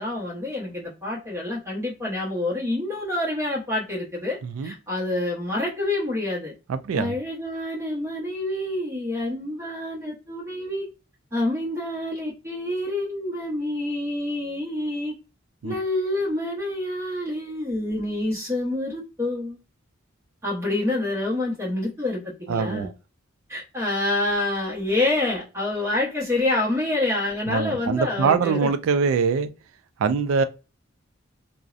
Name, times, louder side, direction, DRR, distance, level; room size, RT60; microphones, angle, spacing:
voice 1, 0.0-6.5 7.0-10.9 11.3-15.1 15.6-19.6 20.4-22.9 23.5-28.7, left 2 dB, 15° right, 0.8 m, -27 dB
voice 2, 4.4-4.7 6.7-7.2 15.6-15.7 22.5-22.9 27.5-29.5 30.0-30.4, right 5 dB, 75° right, 0.3 m, -23 dB
2.6 x 2.0 x 2.3 m
head